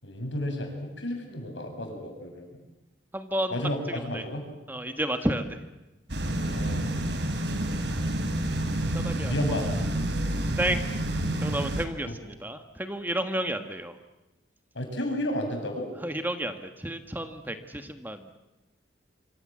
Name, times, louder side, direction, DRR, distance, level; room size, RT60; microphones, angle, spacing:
voice 1, 0.0-2.6 3.5-4.4 6.4-6.8 9.3-9.7 12.1-12.2 14.7-15.8, left 1 dB, 75° left, 3 dB, 7.4 m, -32 dB
voice 2, 3.1-3.6 3.9-4.2 4.7-5.4 8.9-9.3 10.6-10.9 11.4-14.0 16.0-18.4, right 1 dB, 10° right, 7 dB, 1.4 m, -31 dB
sound 1, 6.1-11.9, right 1 dB, 65° right, 3.0 m, -29 dB
26.5 x 25.5 x 7.5 m, 1.0 s
head